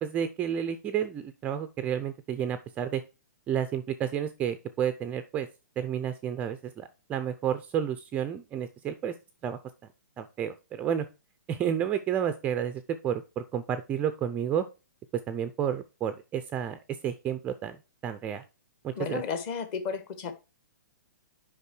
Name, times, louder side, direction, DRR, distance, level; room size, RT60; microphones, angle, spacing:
voice 1, 0.0-3.0 3.5-5.5 5.8-9.1 9.4-9.6 10.2-11.1 11.5-14.7 15.3-18.4 18.8-19.2, right 9 dB, 15° right, 11 dB, 0.4 m, -31 dB
voice 2, 19.0-20.3, left 6 dB, 30° left, 10 dB, 1.3 m, -33 dB
8.3 x 5.4 x 4.4 m, 0.28 s
hypercardioid pair, 155°, 10 cm